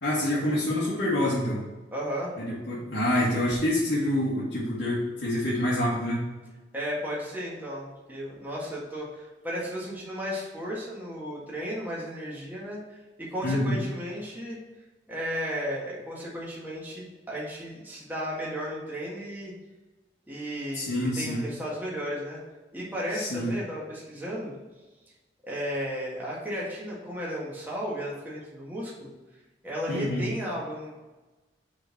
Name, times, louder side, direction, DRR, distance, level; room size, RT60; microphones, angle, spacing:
voice 1, 0.0-1.6 2.4-6.2 13.4-13.8 20.7-21.4 23.2-23.5 29.9-30.2, left 1 dB, 80° left, -9 dB, 1.8 m, -27 dB
voice 2, 1.9-2.4 6.7-14.6 15.1-19.5 20.3-22.4 22.7-24.5 25.4-29.1 29.6-30.9, equal, 10° right, -6 dB, 1.6 m, -34 dB
6.7 x 4.0 x 5.8 m, 1.2 s
head